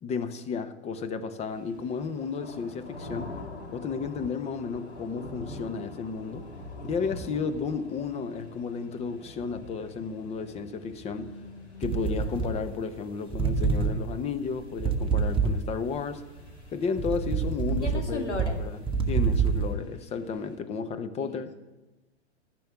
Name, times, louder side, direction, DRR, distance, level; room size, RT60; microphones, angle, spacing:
voice 1, 0.0-3.3 3.7-6.4 6.8-11.3 11.8-16.2 16.7-18.8 19.1-21.5, left 5 dB, 20° left, 11 dB, 0.8 m, -33 dB
sound 1, 1.5-20.6, left 1 dB, 65° left, 4.8 m, -46 dB
voice 2, 11.1-12.4 17.8-18.6 19.7-19.9 21.2-21.5, left 2 dB, 85° left, 3 dB, 2.2 m, -38 dB
sound 2, 11.8-13.0 13.3-16.0 16.5-19.7, right 5 dB, 15° right, 1.0 m, -27 dB
13.5 x 6.2 x 9.7 m, 1.1 s
figure-of-eight pair, 105°, 34 cm